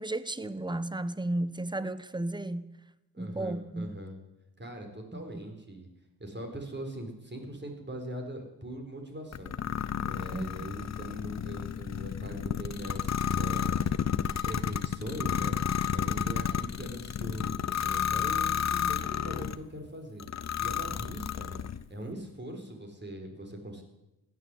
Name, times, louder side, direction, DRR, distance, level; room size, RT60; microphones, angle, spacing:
voice 1, 0.0-2.8 3.2-3.9 5.1-5.2 10.3-10.6, right 1 dB, 10° right, 1.0 m, -34 dB
voice 2, 3.1-4.1 4.6-5.9 6.2-9.5 10.0-13.9 14.4-15.6 15.9-20.2 20.6-21.6 21.9-23.8, right 1 dB, 25° right, 4.1 m, -41 dB
sound 1, 9.3-19.6 20.2-21.8, left 8 dB, 40° left, 0.8 m, -31 dB
15.5 x 9.5 x 8.0 m
cardioid pair, 60°, 41 cm